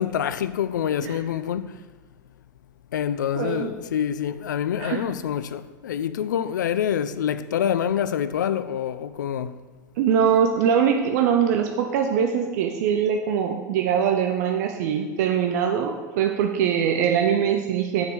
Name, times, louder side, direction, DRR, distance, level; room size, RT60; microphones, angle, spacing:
voice 1, 0.0-1.8 2.9-9.6, left 9 dB, 75° left, 0.4 m, -26 dB
voice 2, 3.4-3.7 4.8-5.1 10.0-18.1, right 8 dB, 60° right, 0.6 m, -22 dB
6.4 x 5.3 x 4.7 m
hypercardioid pair, 90°, 10 cm